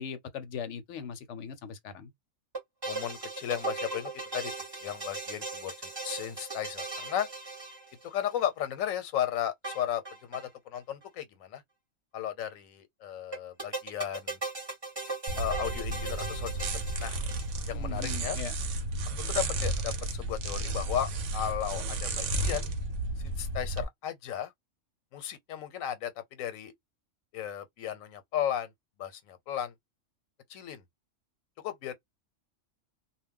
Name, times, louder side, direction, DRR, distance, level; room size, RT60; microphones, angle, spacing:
voice 1, 0.0-2.1 17.7-18.5, left 6 dB, 70° left, 0.8 m, -39 dB
sound 1, 2.5-8.3 9.6-10.5 10.7-10.8 11.0-11.1 13.3-17.8, right 3 dB, 20° right, 0.8 m, -38 dB
voice 2, 2.9-4.5 4.8-7.3 8.0-11.6 12.1-14.4 15.4-17.2 17.7-18.4 19.3-22.7 23.2-24.5 25.1-26.7 27.3-28.7 29.0-29.7 30.5-30.8 31.6-31.9, left 10 dB, 90° left, 1.0 m, -35 dB
sound 2, 15.3-23.8, right 2 dB, 70° right, 0.9 m, -33 dB
2.2 x 2.1 x 3.6 m
omnidirectional pair, 1.4 m